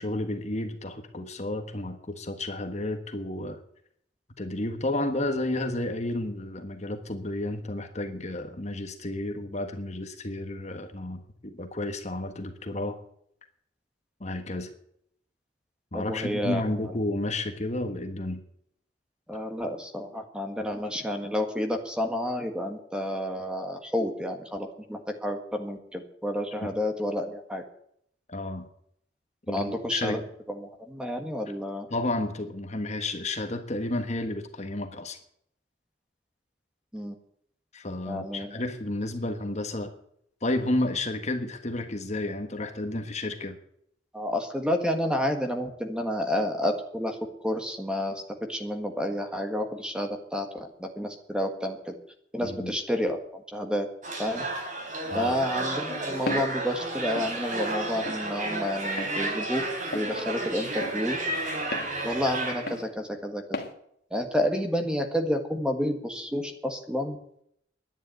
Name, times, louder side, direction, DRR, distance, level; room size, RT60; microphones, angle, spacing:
voice 1, 0.0-3.6 4.4-13.0 14.2-14.7 15.9-18.4 26.6-26.7 28.3-28.7 29.5-30.2 31.9-35.2 37.7-39.9 40.4-43.6 52.4-52.7 55.1-55.3, left 2 dB, 35° left, 6 dB, 1.5 m, -31 dB
voice 2, 15.9-17.0 19.3-27.6 29.5-30.2 30.5-31.9 36.9-37.2 38.1-38.6 44.1-48.2 48.5-52.0 52.3-53.9 54.2-54.4 55.1-59.6 59.9-61.2 62.0-63.6 64.1-67.2, left 1 dB, 5° right, 5 dB, 1.7 m, -30 dB
sound 1, 54.0-62.8, right 2 dB, 40° right, 3.9 m, -32 dB
Walk footsteps, 56.3-56.5 57.2-57.3 58.1-58.2 59.0-59.2 59.9-60.1 60.8-61.0 61.7-61.9 62.7-62.9 63.5-63.7, left 2 dB, 55° left, 1.9 m, -34 dB
11.0 x 10.5 x 9.0 m, 0.70 s
head